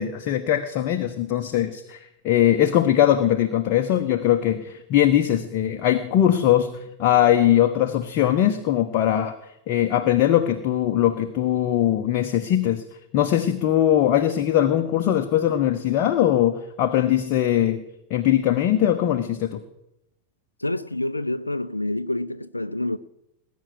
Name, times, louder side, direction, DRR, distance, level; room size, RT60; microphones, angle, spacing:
voice 1, 0.0-6.7 7.0-9.3 9.7-12.8 13.1-17.8 18.1-19.6, left 11 dB, 40° left, 1.0 m, -21 dB
voice 2, 20.6-23.0, left 1 dB, 85° left, 0.5 m, -27 dB
20.0 x 9.5 x 6.3 m
figure-of-eight pair, 90°, 0 cm